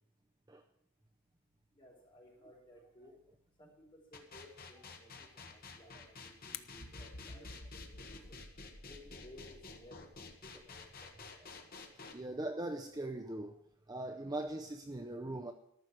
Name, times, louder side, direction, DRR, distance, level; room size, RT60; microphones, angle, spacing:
voice 1, 1.7-3.1 3.6-8.4 8.9-11.1, left 1 dB, 25° left, -3 dB, 4.8 m, -58 dB
sound 1, 4.1-12.1, left 4 dB, 45° left, 1.6 m, -50 dB
sound 2, 5.5-8.1, left 13 dB, 65° left, 0.6 m, -54 dB
sound 3, 6.7-10.8 11.3-11.5, equal, 90° left, 2.2 m, -53 dB
voice 2, 12.1-13.6 13.9-15.5, right 1 dB, 20° right, 5 dB, 0.6 m, -40 dB
14.0 x 6.3 x 9.1 m, 0.75 s
head